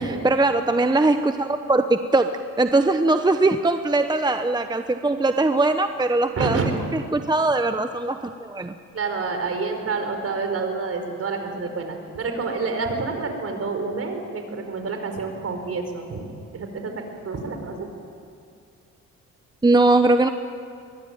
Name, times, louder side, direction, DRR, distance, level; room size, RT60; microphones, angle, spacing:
voice 1, 0.0-6.6 7.1-8.7 19.6-20.3, right 2 dB, 15° right, 8 dB, 0.9 m, -21 dB
voice 2, 6.3-6.7 8.9-16.3 16.5-17.9, right 4 dB, 50° right, 5 dB, 4.9 m, -28 dB
22.5 x 22.5 x 9.5 m, 2.4 s
cardioid pair, 90°, 30 cm